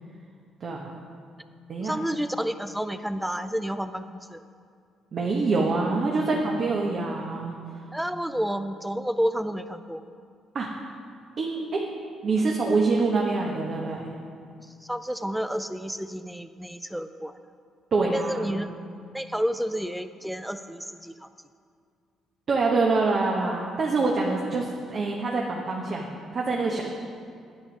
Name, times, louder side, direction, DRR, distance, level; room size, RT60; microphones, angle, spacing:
voice 1, 0.6-1.0 1.7-1.9 5.1-7.5 10.5-10.7 11.4-11.8 12.2-14.0 17.9-18.6 22.5-26.8, right 3 dB, 50° right, -2 dB, 1.2 m, -25 dB
voice 2, 1.8-4.4 7.9-10.0 14.6-17.4 18.0-18.7 19.1-21.3, equal, 5° right, 10 dB, 0.4 m, -30 dB
9.8 x 8.7 x 5.3 m, 2.3 s
cardioid pair, 80°, 0 cm